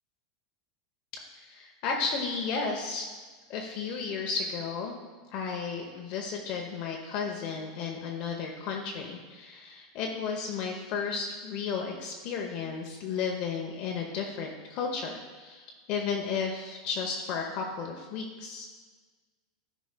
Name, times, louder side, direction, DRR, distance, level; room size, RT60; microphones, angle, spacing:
voice 1, 1.3-3.1 3.5-4.9 5.3-18.7, left 5 dB, 45° left, 1 dB, 0.8 m, -33 dB
12.5 x 5.1 x 2.2 m, 1.4 s
supercardioid pair, 135°, 2 cm